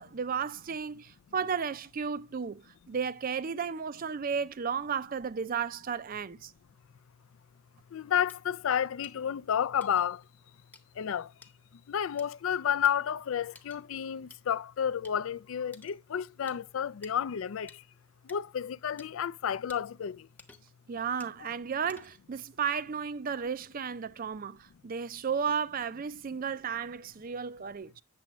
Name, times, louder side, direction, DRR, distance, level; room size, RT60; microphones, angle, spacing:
voice 1, 0.0-6.5 20.9-28.0, right 6 dB, 40° right, 0.4 m, -34 dB
voice 2, 7.9-10.2 11.0-11.3 11.9-17.7 18.3-20.2, left 8 dB, 70° left, 0.4 m, -31 dB
sound 1, 8.3-8.4 9.0-9.2 9.8-10.1 10.7-10.8 11.4-11.5 12.2-12.3 12.8-12.9 13.6-13.8 14.3-14.4 15.0-15.2 15.7-16.0 16.5-16.6 17.0-17.1 17.7-17.8 18.3-18.4 19.0-19.1 19.7-19.8 20.4-20.8 21.2-21.4 21.9-22.3, left 3 dB, 10° left, 0.8 m, -53 dB
8.5 x 7.0 x 3.0 m
head